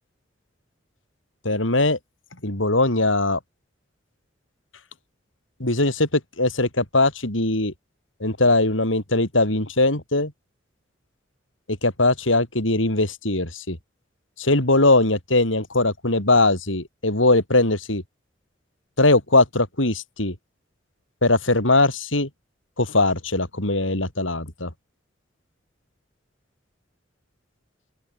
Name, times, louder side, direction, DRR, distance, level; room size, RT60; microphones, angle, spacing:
voice 1, 1.4-2.0 2.4-3.4 5.6-7.7 8.2-10.3 11.8-13.8 14.4-18.0 19.0-20.4 21.2-22.3 22.8-24.7, left 2 dB, 80° left, 5.6 m, -20 dB
open air
head